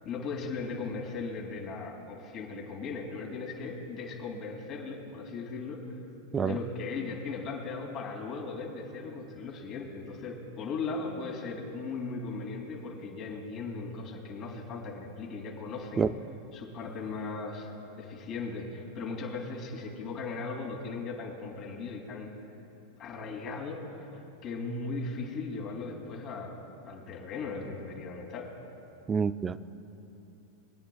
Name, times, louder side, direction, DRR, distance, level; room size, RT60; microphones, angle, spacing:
voice 1, 0.0-5.8 6.4-16.1 16.5-22.3 23.0-26.6 26.8-28.5, left 4 dB, 40° left, 2.7 m, -38 dB
voice 2, 29.1-29.6, right 6 dB, 20° right, 0.4 m, -27 dB
24.5 x 9.2 x 2.3 m
supercardioid pair, 130°, 0 cm